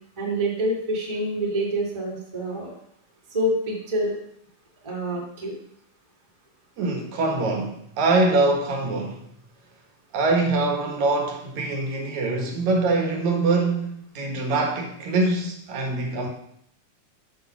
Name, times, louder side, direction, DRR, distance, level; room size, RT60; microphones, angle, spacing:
voice 1, 0.2-2.7 3.3-4.2 4.8-5.5, right 1 dB, 10° right, -2 dB, 1.4 m, -26 dB
voice 2, 6.8-9.2 10.1-16.3, right 3 dB, 70° right, 2 dB, 2.6 m, -24 dB
6.8 x 6.2 x 5.8 m, 0.70 s
omnidirectional pair, 3.4 m